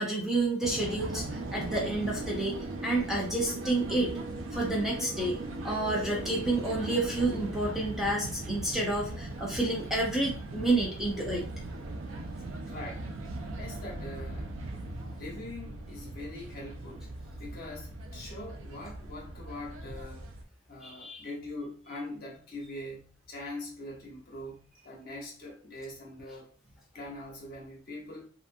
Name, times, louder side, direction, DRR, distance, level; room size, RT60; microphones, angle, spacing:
voice 1, 0.0-2.6 2.8-4.1 4.5-5.4 5.6-11.5 20.8-21.3, right 2 dB, ahead, 0.5 m, -29 dB
sound 1, 0.6-20.4, right 2 dB, 65° right, 0.4 m, -39 dB
voice 2, 12.6-13.1 13.6-14.7 15.2-17.1 17.4-20.3 20.7-26.5 26.9-28.3, left 1 dB, 45° left, 0.9 m, -43 dB
2.6 x 2.4 x 2.5 m
head